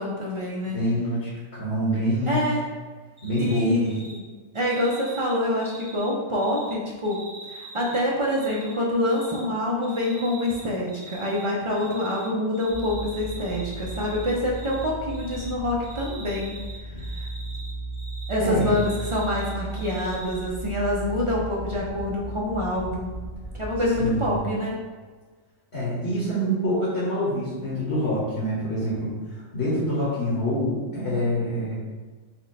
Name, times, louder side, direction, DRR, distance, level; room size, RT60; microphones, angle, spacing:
voice 1, 0.0-0.8 2.3-2.6 3.4-4.0 4.5-16.6 16.9-17.3 18.3-23.1 23.6-24.8, left 1 dB, 55° right, -4 dB, 0.3 m, -26 dB
voice 2, 0.7-2.5 3.2-3.9 18.4-18.8 24.0-24.5 25.7-29.1 29.5-31.7, equal, 55° left, -7 dB, 1.2 m, -26 dB
Cricket, 3.2-3.6 3.8-4.2 4.5-6.7 7.0-8.7 9.0-9.4 9.8-10.6 10.9-12.3 12.5-14.8 15.1-15.5 15.8-18.3 18.6-20.4, right 2 dB, 35° right, 1.0 m, -43 dB
sound 1, 12.7-24.4, right 2 dB, 80° left, 1.2 m, -36 dB
4.3 x 2.1 x 4.0 m, 1.4 s
omnidirectional pair, 1.4 m